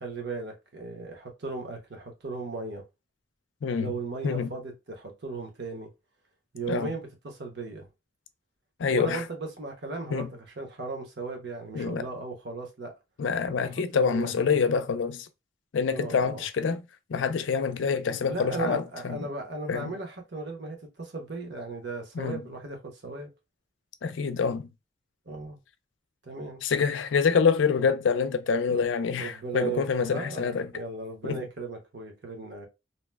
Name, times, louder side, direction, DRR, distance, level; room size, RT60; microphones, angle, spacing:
voice 1, 0.0-2.8 3.8-5.9 6.5-7.9 8.9-12.9 13.6-14.6 15.9-16.5 18.3-23.3 25.3-25.6 26.2-26.6 28.7-28.8 29.2-32.7, right 3 dB, 65° right, 1.0 m, -36 dB
voice 2, 3.6-3.9 4.2-4.5 6.7-6.9 8.8-9.2 10.1-10.3 11.7-12.1 13.2-15.3 15.7-16.8 17.1-19.2 19.7-19.9 22.2-22.4 24.0-24.7 26.6-30.7 31.2-31.4, left 5 dB, 80° left, 0.4 m, -26 dB
2.8 x 2.1 x 3.3 m
head